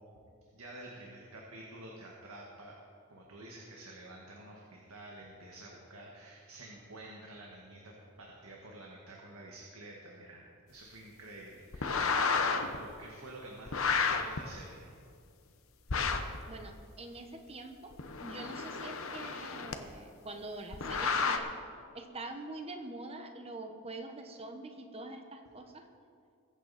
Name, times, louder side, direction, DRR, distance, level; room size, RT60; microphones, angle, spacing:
voice 1, 0.5-2.7 3.1-14.9, right 1 dB, 75° right, -2 dB, 1.7 m, -50 dB
sound 1, 11.7-12.8 13.7-14.4 15.9-16.4 17.9-19.7 20.7-21.4, left 5 dB, 65° left, 1.0 m, -31 dB
voice 2, 16.5-17.9 18.2-21.5 21.9-25.9, right 2 dB, 25° right, 5 dB, 1.1 m, -45 dB
22.0 x 8.7 x 4.2 m, 2.4 s
head